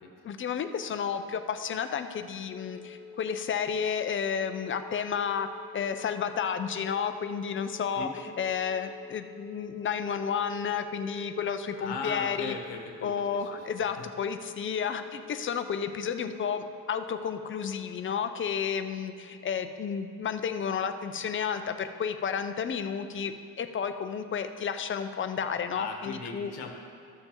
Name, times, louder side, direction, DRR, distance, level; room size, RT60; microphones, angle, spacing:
voice 1, 0.2-8.1 8.4-12.6 13.0-26.5, left 7 dB, 35° left, 9 dB, 0.4 m, -32 dB
sound 1, 2.5-18.0, left 5 dB, 10° left, 1.9 m, -48 dB
voice 2, 8.0-8.3 11.8-13.7 14.0-14.1 25.7-26.7, left 4 dB, 90° left, 2 dB, 1.0 m, -38 dB
13.5 x 6.7 x 2.9 m, 2.5 s
cardioid pair, 145°, 39 cm